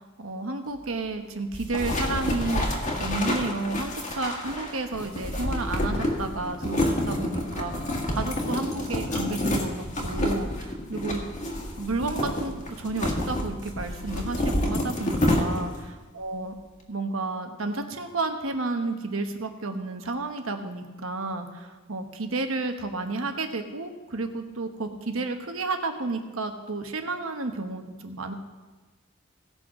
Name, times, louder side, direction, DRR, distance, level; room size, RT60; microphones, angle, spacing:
voice 1, 0.0-2.7 3.0-7.7 8.1-11.2 11.8-16.5 16.9-28.3, right 3 dB, 80° right, 6 dB, 1.1 m, -31 dB
sound 1, 1.5-15.9, left 1 dB, 35° left, 1.7 m, -28 dB
17.5 x 6.4 x 4.9 m, 1.2 s
head